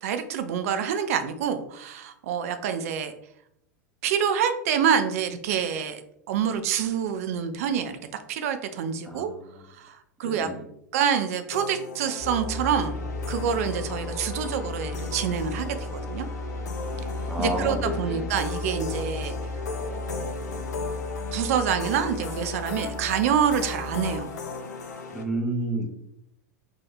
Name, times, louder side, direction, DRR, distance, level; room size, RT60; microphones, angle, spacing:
voice 1, 0.0-3.1 4.0-6.0 6.3-8.0 8.3-9.3 9.8-10.5 10.9-13.0 13.3-16.3 17.4-19.3 19.9-20.2 21.3-24.3, right 8 dB, 55° right, 9 dB, 0.4 m, -27 dB
voice 2, 10.2-10.6 17.3-18.3 25.1-25.9, right 1 dB, 5° right, 1 dB, 0.7 m, -30 dB
sound 1, 11.5-25.2, left 4 dB, 70° left, 0.6 m, -37 dB
sound 2, 12.2-24.2, left 2 dB, 20° left, 1.3 m, -35 dB
2.8 x 2.4 x 3.9 m, 0.75 s
figure-of-eight pair, 90°, 10 cm